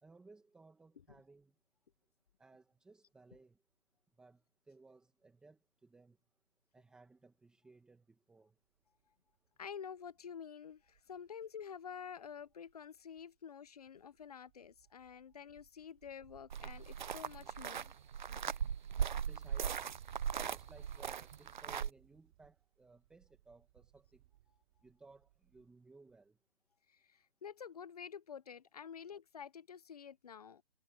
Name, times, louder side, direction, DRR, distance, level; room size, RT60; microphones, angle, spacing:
voice 1, 0.0-1.5 2.4-3.6 4.2-6.2 6.7-8.5 19.3-19.9 20.5-24.2 24.8-26.4, right 3 dB, 5° right, 2.0 m, -61 dB
Wind, 8.8-9.1 9.4-9.5 9.8-13.4 13.7-25.8 26.1-26.2, right 15 dB, 30° right, 5.6 m, -65 dB
voice 2, 9.6-17.9 26.9-30.6, left 7 dB, 40° left, 0.8 m, -49 dB
sound 1, 16.5-21.9, right 8 dB, 50° right, 0.7 m, -39 dB
hypercardioid pair, 160°, 29 cm